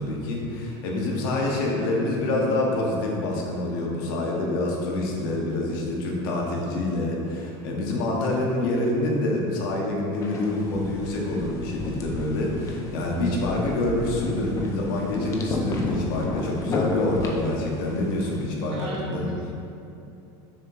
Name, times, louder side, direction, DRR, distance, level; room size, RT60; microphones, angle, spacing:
voice 1, 0.0-19.5, left 2 dB, 85° left, -1 dB, 1.2 m, -26 dB
sound 1, 10.2-18.4, left 3 dB, 30° left, 0.6 m, -32 dB
voice 2, 18.7-19.5, right 2 dB, 50° right, -4 dB, 0.9 m, -37 dB
6.4 x 2.9 x 5.6 m, 2.7 s
cardioid pair, 160°, 11 cm